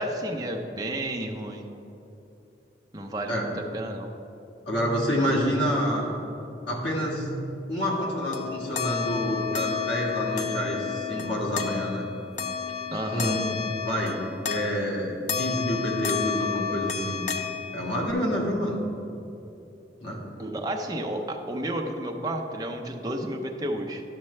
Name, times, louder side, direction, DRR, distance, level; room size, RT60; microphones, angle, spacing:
voice 1, 0.0-1.7 2.9-3.4 3.7-4.1 12.9-13.3 20.4-24.0, right 1 dB, 20° right, 1 dB, 0.6 m, -31 dB
voice 2, 4.6-6.1 6.7-7.3 7.7-12.0 13.1-14.2 14.5-17.2 17.7-18.8 20.0-20.2, equal, 80° left, -3 dB, 1.7 m, -28 dB
sound 1, 7.9-15.0 15.3-18.1, left 7 dB, 40° left, 0.5 m, -32 dB
11.5 x 6.4 x 3.2 m, 2.9 s
head